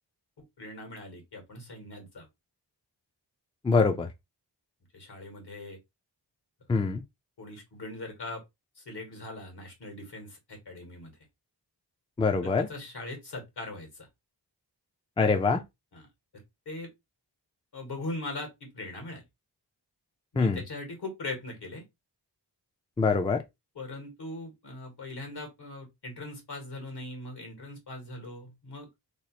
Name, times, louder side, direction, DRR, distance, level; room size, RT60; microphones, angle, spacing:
voice 1, 0.4-2.3 4.9-5.8 7.4-8.4 8.7-11.2 12.4-14.1 15.9-16.1 16.6-16.9 17.7-19.2 20.3-21.9 23.7-28.9, left 2 dB, 65° left, 1.5 m, -40 dB
voice 2, 3.6-4.1 6.7-7.0 12.2-12.7 15.2-15.6 20.4-20.6 23.0-23.4, left 4 dB, 15° left, 0.4 m, -24 dB
3.0 x 2.0 x 2.9 m
cardioid pair, 50°, 42 cm